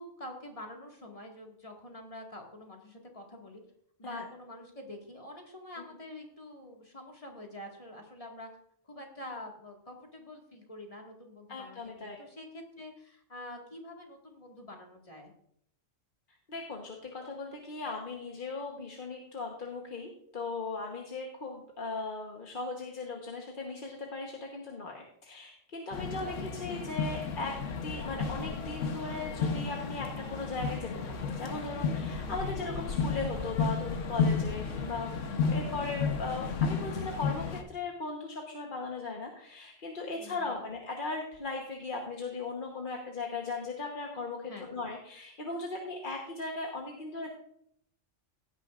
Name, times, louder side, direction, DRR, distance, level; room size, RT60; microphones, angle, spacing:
voice 1, 0.0-3.6 4.0-8.5 8.8-15.3 25.9-26.3 32.4-32.5 40.1-40.7 44.5-44.7, left 1 dB, 30° left, 1 dB, 1.9 m, -46 dB
voice 2, 11.5-12.2 16.5-35.1 35.5-47.3, left 3 dB, 45° left, 1 dB, 1.2 m, -38 dB
sound 1, 25.9-37.6, left 5 dB, 75° left, 1.3 m, -33 dB
16.5 x 9.1 x 2.4 m, 0.70 s
omnidirectional pair, 1.3 m